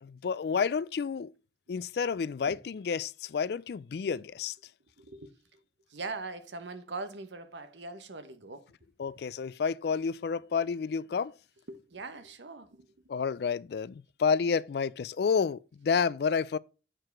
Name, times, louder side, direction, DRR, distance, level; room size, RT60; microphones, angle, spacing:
voice 1, 0.0-1.3 1.7-4.6 9.0-11.3 13.1-16.6, left 6 dB, 60° left, 0.3 m, -30 dB
voice 2, 5.0-5.6 5.9-8.7 11.7-12.9, right 3 dB, 80° right, 1.0 m, -41 dB
7.6 x 4.9 x 4.5 m
head